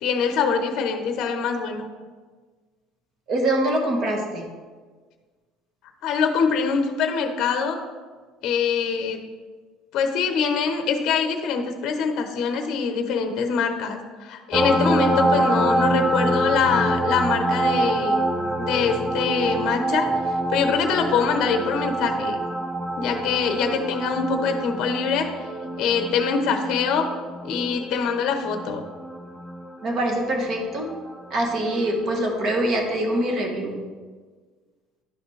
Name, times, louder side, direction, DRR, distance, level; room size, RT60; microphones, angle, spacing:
voice 1, 0.0-1.9 6.0-7.8 8.4-9.2 9.9-18.3 18.6-20.1 20.5-22.4 23.0-25.3 25.8-27.1 27.4-28.8, left 6 dB, 45° left, 6 dB, 0.7 m, -24 dB
voice 2, 3.3-4.4 29.8-30.9 31.3-33.8, right 1 dB, 40° right, 2 dB, 1.3 m, -24 dB
sound 1, 14.5-31.7 33.3-33.4, right 1 dB, 10° right, 0.4 m, -26 dB
11.5 x 4.9 x 3.2 m, 1.4 s
cardioid pair, 170°, 0 cm